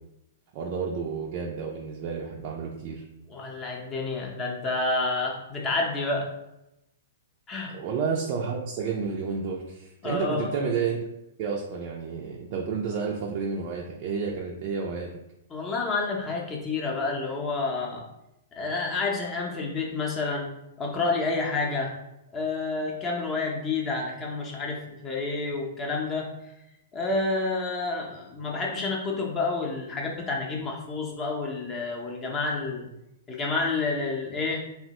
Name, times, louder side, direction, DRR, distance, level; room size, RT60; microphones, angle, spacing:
voice 1, 0.5-3.0 7.7-11.0 11.4-15.1, right 5 dB, 45° right, -2 dB, 0.4 m, -31 dB
voice 2, 3.3-6.3 7.5-7.7 10.0-10.5 15.5-18.0 18.6-20.5 20.8-21.9 22.3-26.3 26.9-32.9 33.3-34.6, left 3 dB, 25° left, -1 dB, 0.6 m, -29 dB
2.9 x 2.0 x 2.8 m, 0.88 s
hypercardioid pair, 125°, 0 cm